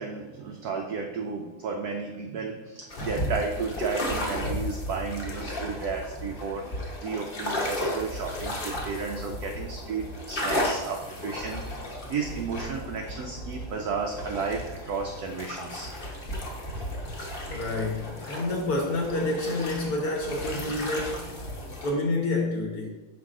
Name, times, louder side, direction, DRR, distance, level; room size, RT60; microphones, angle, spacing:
voice 1, 0.0-15.9, right 5 dB, 75° right, 3 dB, 0.8 m, -33 dB
sound 1, 2.9-21.9, left 1 dB, 40° left, 0.8 m, -34 dB
voice 2, 17.5-21.3 21.8-22.9, left 2 dB, 60° left, 1 dB, 1.1 m, -28 dB
5.9 x 4.7 x 3.6 m, 1.2 s
omnidirectional pair, 2.2 m